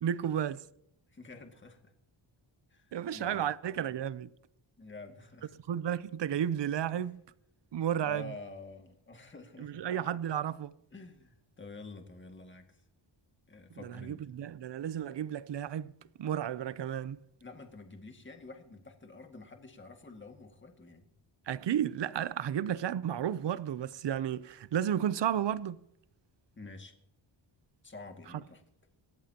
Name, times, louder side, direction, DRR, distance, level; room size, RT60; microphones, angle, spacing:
voice 1, 0.0-0.6 2.9-4.3 5.7-7.2 7.7-8.3 9.6-10.7 13.8-15.9 16.2-17.2 21.5-25.8, right 9 dB, 60° right, 0.7 m, -32 dB
voice 2, 1.1-1.9 2.7-3.5 4.8-5.5 7.0-7.1 8.0-9.9 10.9-12.8 13.5-14.2 17.4-21.1 26.6-26.9 27.8-28.6, left 3 dB, 25° left, 2.1 m, -49 dB
27.0 x 14.0 x 2.9 m
wide cardioid pair, 165°, 49 cm